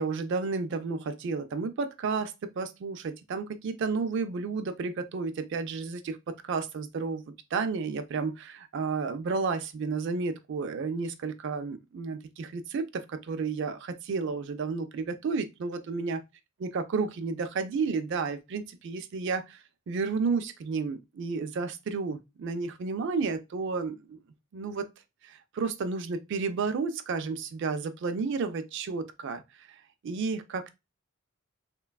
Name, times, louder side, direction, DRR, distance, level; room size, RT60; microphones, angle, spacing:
voice 1, 0.0-16.2 16.6-19.6 19.9-24.2 24.5-24.9 25.2-29.7 30.0-30.7, right 4 dB, 60° right, 0.3 m, -32 dB
3.1 x 2.2 x 2.2 m
head